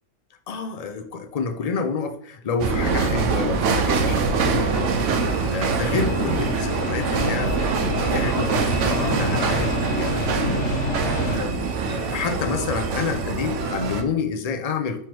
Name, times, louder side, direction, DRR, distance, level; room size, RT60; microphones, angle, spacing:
voice 1, 0.5-4.9 5.5-7.5 8.1-10.7 11.1-15.1, left 5 dB, 50° left, 5 dB, 0.4 m, -29 dB
sound 1, 2.6-14.0, right 4 dB, 75° right, 0.9 m, -24 dB
sound 2, 3.1-11.4, left 2 dB, 80° left, 1.5 m, -30 dB
5.7 x 3.1 x 3.0 m, 0.69 s
omnidirectional pair, 1.3 m